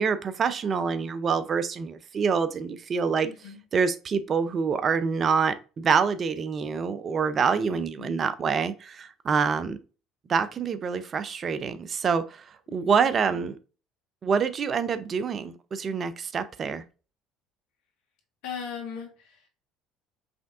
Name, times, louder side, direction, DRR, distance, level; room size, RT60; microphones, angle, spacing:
voice 1, 0.0-3.3 3.7-9.8 10.3-12.4 12.7-13.6 14.2-16.8, right 6 dB, 45° right, 0.5 m, -26 dB
voice 2, 3.2-3.6 7.7-8.3 13.0-13.4 18.4-19.5, left 7 dB, 70° left, 1.4 m, -39 dB
5.1 x 3.4 x 2.4 m
hypercardioid pair, 65°, 0 cm